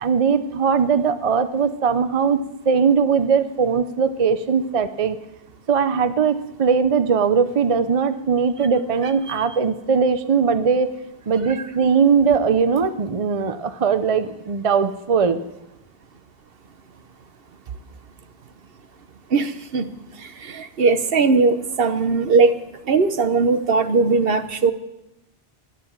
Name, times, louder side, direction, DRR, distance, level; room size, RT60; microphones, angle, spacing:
voice 1, 0.0-5.2 5.7-10.9 11.3-15.4, right 6 dB, 35° right, 11 dB, 0.7 m, -20 dB
voice 2, 19.3-19.9 20.4-22.6 22.9-24.7, right 4 dB, 65° right, 11 dB, 1.1 m, -19 dB
13.0 x 11.5 x 7.2 m, 0.90 s
omnidirectional pair, 1.1 m